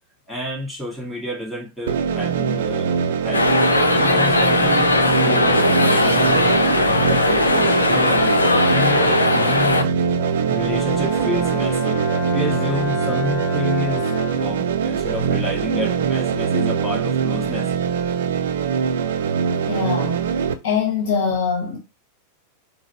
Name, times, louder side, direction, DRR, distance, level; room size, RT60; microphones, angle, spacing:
voice 1, 0.3-3.4 3.9-5.0 5.2-8.1 8.7-9.9 10.5-12.0 12.3-17.7, left 1 dB, ahead, 2.0 m, -29 dB
sound 1, 1.9-20.5, right 7 dB, 60° right, 0.5 m, -22 dB
sound 2, 3.3-9.8, left 2 dB, 75° left, 0.5 m, -18 dB
Brass instrument, 10.2-14.6, left 4 dB, 20° left, 1.0 m, -31 dB
voice 2, 19.7-20.2 20.6-21.8, left 6 dB, 55° left, 1.0 m, -22 dB
4.9 x 2.0 x 4.3 m
figure-of-eight pair, 90°, 0 cm